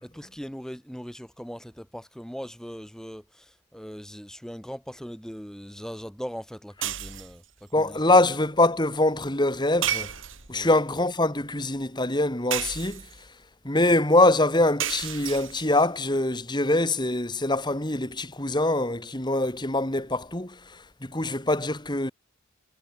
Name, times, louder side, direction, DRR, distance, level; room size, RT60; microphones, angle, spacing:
voice 1, 0.0-7.4 7.8-8.0 10.5-10.8 21.3-21.4, equal, 5° left, 2.3 m, -40 dB
sound 1, 6.8-7.4 9.8-10.7 12.5-13.3 14.8-15.8, right 10 dB, 65° right, 5.8 m, -32 dB
voice 2, 7.7-10.1 10.5-13.1 13.6-22.1, left 2 dB, 20° left, 2.5 m, -24 dB
head